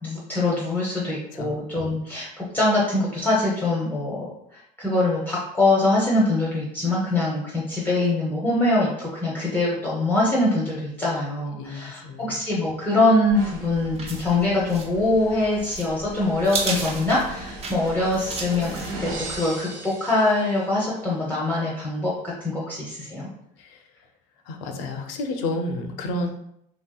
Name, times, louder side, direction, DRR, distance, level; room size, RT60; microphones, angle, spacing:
voice 1, 0.0-4.2 4.5-18.7 19.0-22.1 22.4-23.3, left 2 dB, 10° left, -6 dB, 0.6 m, -23 dB
voice 2, 11.6-12.4 23.6-23.9 24.5-26.3, left 2 dB, 90° left, 5 dB, 0.5 m, -31 dB
sound 1, 13.3-19.5, right 3 dB, 35° right, 0.6 m, -35 dB
sound 2, 13.3-20.9, right 1 dB, 70° right, 1.1 m, -39 dB
3.0 x 2.8 x 2.2 m, 0.75 s
cardioid pair, 115°, 18 cm